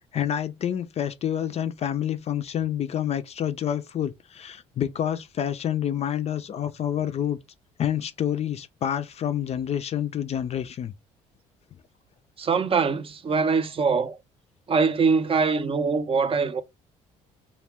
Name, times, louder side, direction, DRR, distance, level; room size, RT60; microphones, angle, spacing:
voice 1, 0.1-7.4 7.8-10.9, left 10 dB, 40° left, 0.4 m, -28 dB
voice 2, 12.4-14.2 14.7-16.6, right 5 dB, 35° right, 0.5 m, -23 dB
2.4 x 2.1 x 3.4 m
hypercardioid pair, 55°, 17 cm